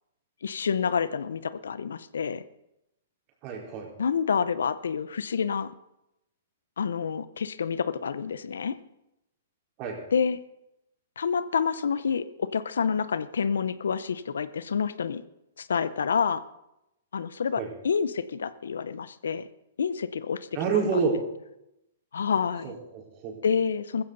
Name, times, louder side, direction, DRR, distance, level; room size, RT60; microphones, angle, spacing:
voice 1, 0.4-2.4 4.0-5.7 6.8-8.8 10.1-10.4 11.2-15.2 15.6-16.4 17.1-19.5 19.8-20.5 20.7-21.0 22.1-22.7 23.4-24.0, left 6 dB, 80° left, 15 dB, 0.7 m, -28 dB
voice 2, 3.4-3.9 9.8-10.0 17.6-17.7 20.5-21.2 22.6-23.4, right 5 dB, 40° right, 0 dB, 4.3 m, -28 dB
15.0 x 15.0 x 4.0 m, 0.87 s
hypercardioid pair, 135°, 0 cm